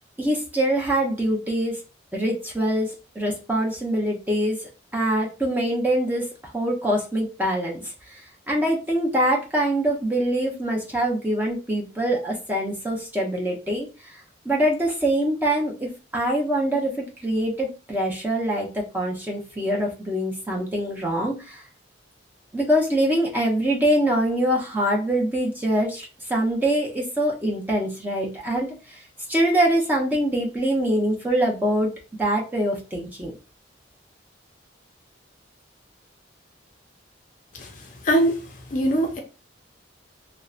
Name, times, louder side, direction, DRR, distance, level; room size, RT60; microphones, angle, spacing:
voice 1, 0.2-1.8 2.1-8.2 8.5-14.2 14.4-21.6 22.5-29.0 29.3-31.9 32.2-33.3, right 1 dB, 10° right, 0.6 m, -24 dB
voice 2, 38.0-38.4 38.7-39.2, right 1 dB, 40° left, 0.4 m, -21 dB
2.7 x 2.0 x 2.4 m
head